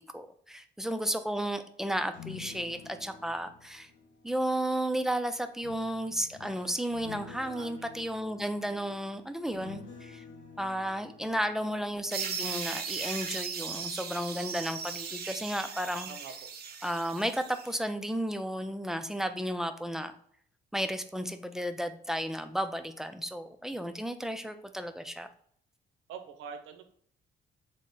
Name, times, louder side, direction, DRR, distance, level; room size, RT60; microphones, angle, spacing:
voice 1, 0.1-3.9 4.2-10.2 10.6-16.1 16.8-20.1 20.7-25.3, equal, ahead, 8 dB, 0.3 m, -33 dB
sound 1, 2.1-4.8 5.6-12.6 12.9-13.2, left 7 dB, 70° left, 0.6 m, -50 dB
voice 2, 7.4-7.9 16.1-16.5 26.1-26.9, right 6 dB, 90° right, 7 dB, 0.6 m, -45 dB
sound 2, 12.1-17.7, right 6 dB, 55° right, 0.6 m, -38 dB
3.5 x 2.0 x 3.8 m, 0.63 s
cardioid pair, 90°, 20 cm